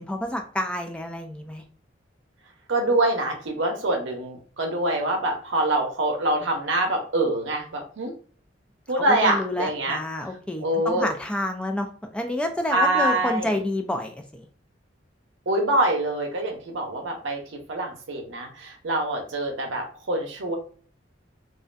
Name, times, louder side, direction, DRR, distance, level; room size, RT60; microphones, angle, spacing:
voice 1, 0.0-1.6 9.0-14.5, left 1 dB, 5° left, 4 dB, 0.3 m, -29 dB
voice 2, 2.7-8.1 8.9-10.0 10.6-11.1 12.7-13.6 15.5-17.4 17.7-20.6, right 1 dB, 80° right, 2 dB, 0.7 m, -25 dB
2.4 x 2.1 x 2.4 m, 0.43 s
head